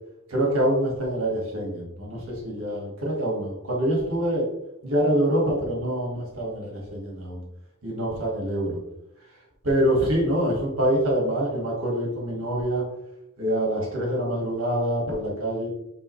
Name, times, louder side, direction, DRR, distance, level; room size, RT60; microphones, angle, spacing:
voice 1, 0.3-4.5 4.8-7.4 7.8-8.8 9.6-12.8 13.4-15.7, right 1 dB, 80° right, -2 dB, 2.1 m, -25 dB
9.0 x 3.5 x 3.2 m, 0.84 s
head